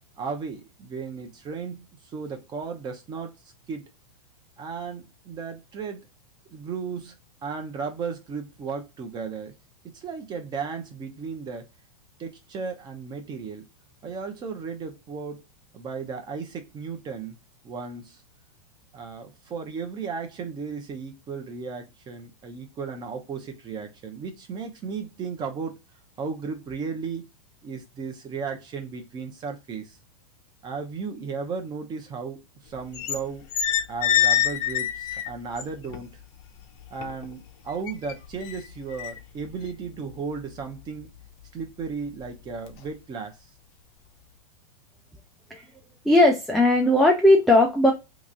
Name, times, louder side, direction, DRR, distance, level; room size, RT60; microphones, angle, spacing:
voice 1, 0.2-1.8 2.1-3.3 3.7-3.8 4.6-6.0 6.5-7.2 7.4-9.5 9.9-11.6 12.2-13.6 14.0-15.4 15.7-17.4 17.6-18.2 18.9-25.8 26.2-27.2 27.6-30.0 30.6-32.4 32.6-33.4 33.9-36.2 36.9-41.1 41.5-43.4, right 5 dB, 25° right, 0.8 m, -35 dB
sound 1, 32.7-33.2 33.5-36.0 36.4-37.3 37.7-40.8 41.2-41.4 41.9-42.3 42.7-42.9, left 11 dB, 45° left, 0.7 m, -26 dB
voice 2, 46.1-47.9, left 1 dB, ahead, 0.3 m, -17 dB
3.0 x 2.5 x 3.7 m
hypercardioid pair, 135°, 19 cm